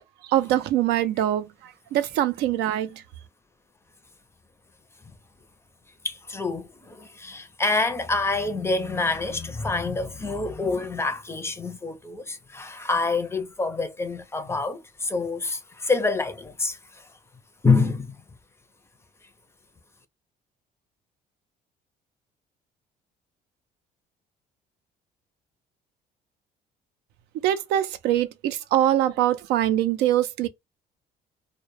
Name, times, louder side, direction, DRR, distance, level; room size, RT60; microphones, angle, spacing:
voice 1, 0.2-3.0 27.4-30.5, right 12 dB, 85° right, 0.4 m, -23 dB
voice 2, 6.0-17.1 17.6-18.1, left 3 dB, 15° left, 0.4 m, -27 dB
2.1 x 2.1 x 3.0 m
cardioid pair, 110°, 17 cm